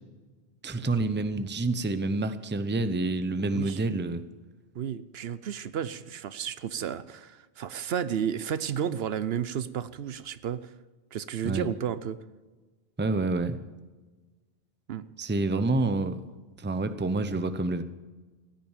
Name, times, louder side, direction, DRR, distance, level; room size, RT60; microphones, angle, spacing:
voice 1, 0.6-4.2 11.4-11.7 13.0-13.6 15.2-16.2 16.6-17.8, right 2 dB, 15° right, 11 dB, 0.6 m, -28 dB
voice 2, 3.4-3.8 4.7-10.7 11.1-12.2 14.9-15.1, right 8 dB, 75° right, 15 dB, 0.9 m, -32 dB
15.0 x 10.0 x 7.3 m, 1.3 s
omnidirectional pair, 1.1 m